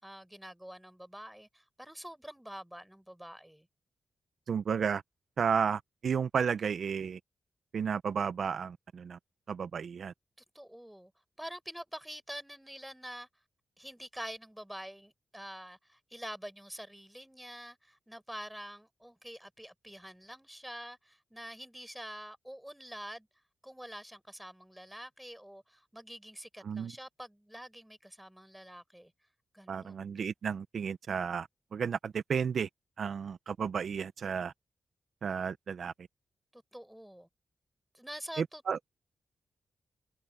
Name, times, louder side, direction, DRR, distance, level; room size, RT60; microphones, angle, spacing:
voice 1, 0.0-3.7 10.5-11.1 11.4-13.3 13.8-23.3 23.6-29.1 29.5-30.1 36.5-37.3 37.9-38.6, equal, 5° right, 5.6 m, -46 dB
voice 2, 4.5-5.0 5.4-7.2 7.7-9.2 9.5-10.1 26.6-26.9 29.7-32.7 33.0-34.5 35.2-35.9 38.4-38.8, right 6 dB, 70° right, 0.6 m, -32 dB
cardioid pair, 75°, 0 cm